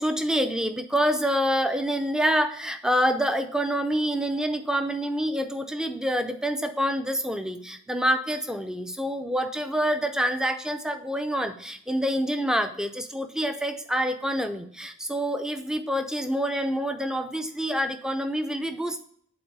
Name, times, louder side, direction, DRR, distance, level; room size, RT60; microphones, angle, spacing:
voice 1, 0.0-19.0, equal, 5° right, 8 dB, 0.4 m, -27 dB
8.0 x 4.0 x 4.6 m, 0.64 s
head